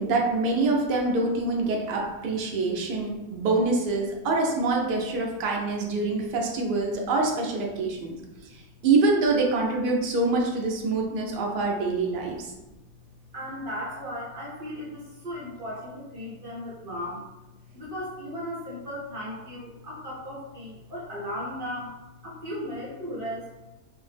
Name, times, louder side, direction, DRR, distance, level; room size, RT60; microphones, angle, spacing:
voice 1, 0.0-8.1 8.8-12.5, right 3 dB, 80° right, 0 dB, 0.4 m, -25 dB
voice 2, 13.3-17.3 17.7-21.9 22.2-23.5, equal, 50° right, -6 dB, 0.7 m, -36 dB
2.5 x 2.0 x 3.2 m, 1.0 s
omnidirectional pair, 1.5 m